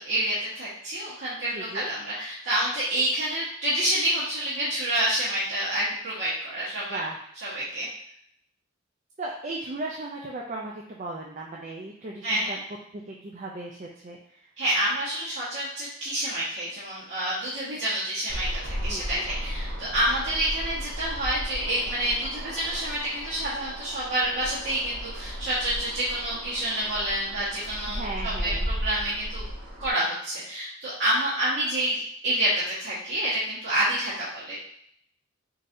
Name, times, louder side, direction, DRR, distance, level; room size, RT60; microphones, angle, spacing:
voice 1, 0.0-7.0 7.4-7.9 12.2-12.6 14.6-29.4 29.8-34.6, right 1 dB, 60° right, -11 dB, 1.2 m, -28 dB
voice 2, 1.5-1.9 6.9-7.3 9.2-12.6 12.9-14.5 18.9-19.3 27.9-28.7, right 2 dB, 35° right, -2 dB, 0.4 m, -36 dB
sound 1, 18.3-29.9, equal, 80° right, 1.0 m, -35 dB
4.2 x 3.8 x 2.6 m, 0.68 s
head